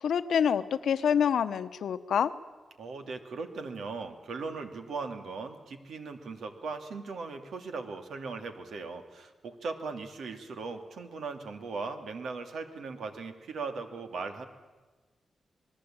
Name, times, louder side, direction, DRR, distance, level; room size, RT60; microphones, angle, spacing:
voice 1, 0.0-2.3, left 8 dB, 85° left, 12 dB, 0.9 m, -26 dB
voice 2, 2.8-14.5, right 4 dB, 85° right, 7 dB, 2.3 m, -38 dB
27.0 x 20.0 x 8.8 m, 1.2 s
wide cardioid pair, 135°, 0 cm